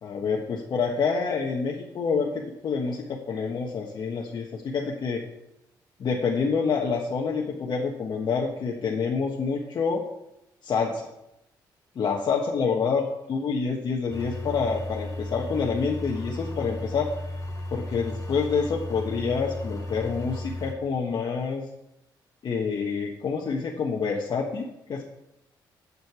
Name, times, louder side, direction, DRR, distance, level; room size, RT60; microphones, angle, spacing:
voice 1, 0.0-5.2 6.0-10.0 10.6-11.1 11.9-17.1 17.7-21.6 22.4-25.0, left 5 dB, 60° left, -2 dB, 1.4 m, -27 dB
sound 1, 14.1-20.7, left 1 dB, 45° left, 2.4 m, -35 dB
7.8 x 6.8 x 8.3 m, 0.88 s
cardioid pair, 75°, 8 cm